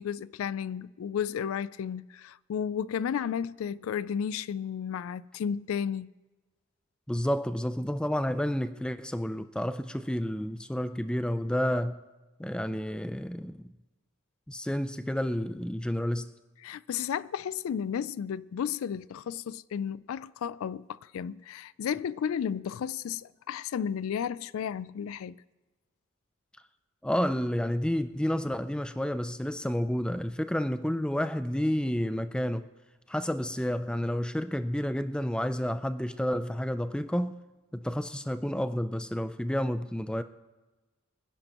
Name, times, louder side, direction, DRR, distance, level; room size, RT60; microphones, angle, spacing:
voice 1, 0.0-6.1 16.6-25.4, left 8 dB, 75° left, 0.3 m, -33 dB
voice 2, 7.1-12.0 12.4-13.7 14.5-16.3 27.0-32.7 33.1-37.4 37.7-40.2, equal, 5° left, 0.4 m, -30 dB
24.0 x 10.5 x 3.0 m
head